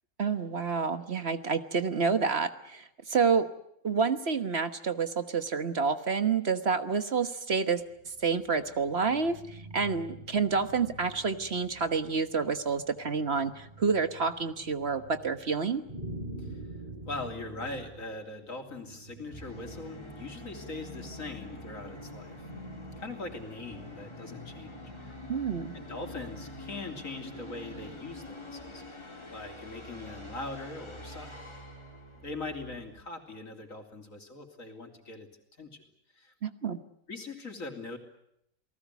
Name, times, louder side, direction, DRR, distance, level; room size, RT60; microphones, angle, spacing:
voice 1, 0.2-3.5 3.8-7.8 8.2-15.8 25.3-25.7 36.4-36.8, right 5 dB, 50° right, 10 dB, 1.5 m, -29 dB
sound 1, 7.9-20.5, right 1 dB, 30° right, 6.3 m, -46 dB
voice 2, 17.1-22.5 23.0-25.2 25.7-28.8 29.3-31.5 32.2-35.3 35.6-35.8 36.1-36.3 37.1-38.0, left 3 dB, 70° left, 4 dB, 3.6 m, -41 dB
Musical instrument, 19.3-33.0, left 1 dB, 20° left, 3.5 m, -45 dB
29.0 x 19.0 x 8.2 m, 0.78 s
omnidirectional pair, 1.4 m